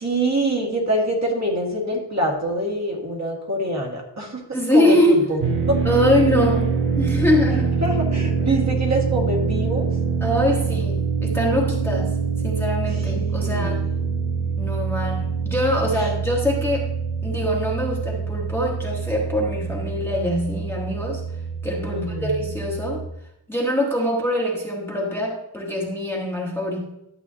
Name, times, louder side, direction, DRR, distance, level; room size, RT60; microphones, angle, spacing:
voice 1, 0.0-4.4 4.7-5.4 5.7-5.8 7.8-9.9 13.1-14.4 16.0-16.1 21.9-22.4, right 1 dB, 40° right, -2 dB, 1.9 m, -25 dB
voice 2, 4.5-5.2 5.8-7.8 10.2-12.1 12.4-13.8 14.6-16.9 17.2-21.2 21.6-23.0 23.5-26.8, equal, 5° left, -2 dB, 1.2 m, -23 dB
sound 1, 5.4-23.1, right 5 dB, 85° right, 1.1 m, -25 dB
12.0 x 7.7 x 2.7 m, 0.84 s
wide cardioid pair, 175°, 41 cm